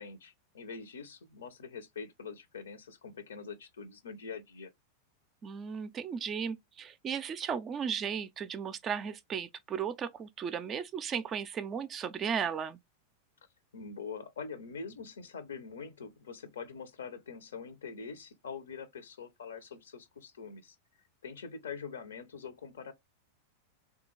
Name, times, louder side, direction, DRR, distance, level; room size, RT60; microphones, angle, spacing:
voice 1, 0.0-4.7 13.7-20.8 21.2-22.9, left 5 dB, 65° left, 0.7 m, -44 dB
voice 2, 5.4-12.8, right 7 dB, 25° right, 0.4 m, -35 dB
3.6 x 2.3 x 3.0 m
figure-of-eight pair, 90°, 0 cm